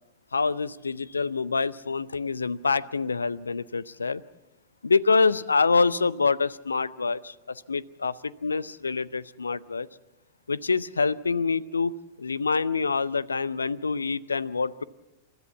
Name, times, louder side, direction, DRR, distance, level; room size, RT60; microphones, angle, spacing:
voice 1, 0.3-4.2 4.8-9.9 10.5-14.8, left 4 dB, 75° left, 21 dB, 0.6 m, -26 dB
30.0 x 13.5 x 7.2 m, 1.0 s
figure-of-eight pair, 95°, 0 cm